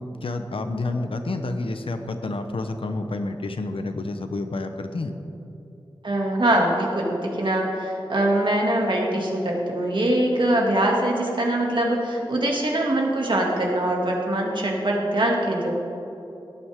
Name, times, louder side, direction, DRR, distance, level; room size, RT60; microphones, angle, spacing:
voice 1, 0.0-5.1, left 2 dB, 75° left, 7 dB, 0.9 m, -29 dB
voice 2, 6.0-15.7, right 1 dB, 60° right, -1 dB, 2.2 m, -23 dB
17.0 x 9.7 x 3.6 m, 2.9 s
wide cardioid pair, 70°, 9 cm